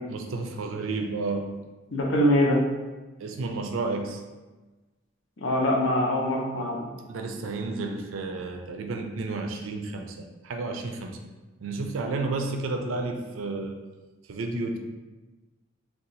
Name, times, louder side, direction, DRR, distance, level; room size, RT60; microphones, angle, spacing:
voice 1, 0.1-1.6 3.2-4.2 7.1-11.2 11.6-13.8 14.3-14.8, right 3 dB, 85° right, 4 dB, 0.4 m, -31 dB
voice 2, 1.9-2.6 5.4-6.8, left 1 dB, 70° left, -2 dB, 0.7 m, -23 dB
2.7 x 2.3 x 3.9 m, 1.2 s
head